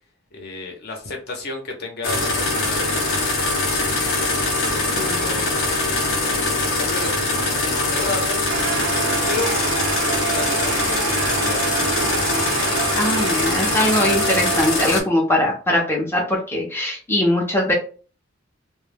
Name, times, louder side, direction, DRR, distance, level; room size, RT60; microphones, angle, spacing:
voice 1, 0.3-3.3 3.7-8.5 9.3-9.5 9.9-12.3, left 3 dB, 55° left, 2 dB, 0.7 m, -33 dB
sound 1, 2.0-15.0, left 2 dB, 90° left, 0.7 m, -22 dB
voice 2, 4.9-5.4 12.9-17.7, left 1 dB, 10° left, -2 dB, 0.5 m, -21 dB
sound 2, 8.5-15.1, right 6 dB, 65° right, 0.4 m, -27 dB
2.1 x 2.1 x 3.2 m, 0.38 s
head